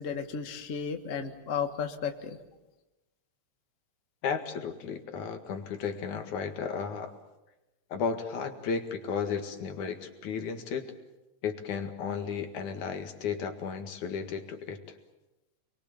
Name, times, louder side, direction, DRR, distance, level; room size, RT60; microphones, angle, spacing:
voice 1, 0.0-2.4, left 6 dB, 35° left, 5 dB, 1.5 m, -34 dB
voice 2, 4.2-7.1 7.9-10.9 11.4-14.8, left 6 dB, 90° left, 6 dB, 3.3 m, -34 dB
29.0 x 22.5 x 7.1 m, 1.0 s
omnidirectional pair, 3.3 m